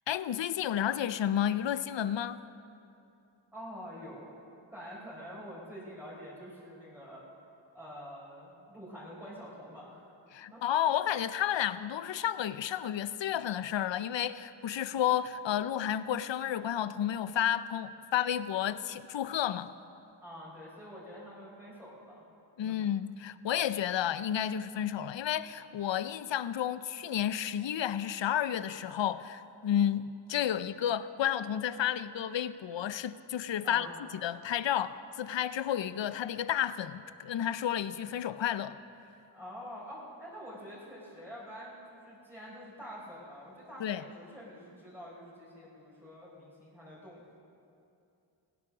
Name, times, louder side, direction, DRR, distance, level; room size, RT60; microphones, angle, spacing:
voice 1, 0.1-2.4 10.3-19.7 22.6-33.9 34.2-38.8 43.8-44.0, left 10 dB, 65° left, 15 dB, 0.6 m, -31 dB
voice 2, 3.5-4.4 4.7-7.3 7.7-10.6 20.2-22.2 22.6-22.8 33.6-33.9 39.3-47.2, equal, 5° right, -7 dB, 4.4 m, -47 dB
16.5 x 11.0 x 6.1 m, 2.7 s
cardioid pair, 50°, 48 cm